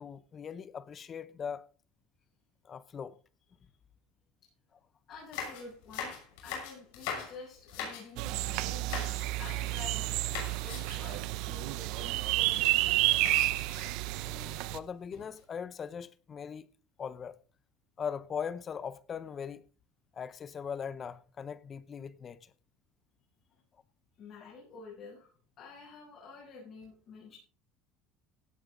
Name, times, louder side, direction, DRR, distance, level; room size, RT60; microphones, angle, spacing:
voice 1, 0.0-1.7 2.6-3.2 14.2-16.7 17.0-17.4 18.0-19.6 20.1-22.5, left 7 dB, 30° left, 0.8 m, -40 dB
sound 1, 5.1-8.3 8.8-9.3 9.6-10.0 10.3-11.1 11.5-11.6 11.9-12.1 13.3-14.2 14.8-15.4, left 7 dB, 80° left, 6.6 m, -41 dB
voice 2, 5.1-6.1 6.4-9.1 9.4-10.2 10.6-13.1 24.1-27.4, left 4 dB, 45° left, 7.6 m, -49 dB
sound 2, 8.2-14.8, right 18 dB, 65° right, 0.8 m, -30 dB
17.5 x 9.3 x 3.9 m
cardioid pair, 135°, 0 cm